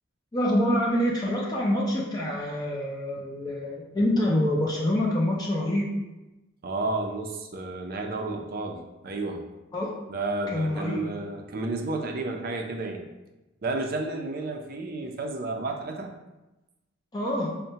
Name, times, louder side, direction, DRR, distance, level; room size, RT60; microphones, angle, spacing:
voice 1, 0.3-5.9 9.7-10.0 10.5-11.2 17.1-17.5, left 1 dB, 20° left, -3 dB, 0.4 m, -26 dB
voice 2, 6.6-9.4 10.1-13.1 13.6-16.1, right 2 dB, 45° right, 3 dB, 0.4 m, -31 dB
5.4 x 2.1 x 2.7 m, 1.0 s
head